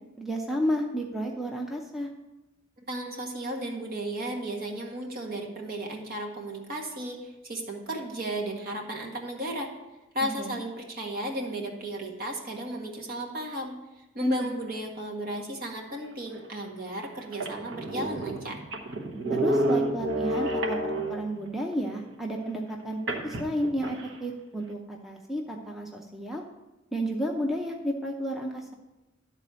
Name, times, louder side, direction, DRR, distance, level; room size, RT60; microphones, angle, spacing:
voice 1, 0.2-2.1 10.2-10.6 14.2-14.5 19.3-26.4 26.9-28.7, equal, ahead, 0 dB, 0.7 m, -32 dB
voice 2, 2.9-9.7 10.1-13.7 14.1-18.6, right 1 dB, 50° right, 1 dB, 1.6 m, -34 dB
sound 1, 16.4-16.5 17.0-17.1 17.3-21.4 23.1-24.2, right 1 dB, 65° right, 1.1 m, -30 dB
12.0 x 4.1 x 6.8 m, 1.0 s
head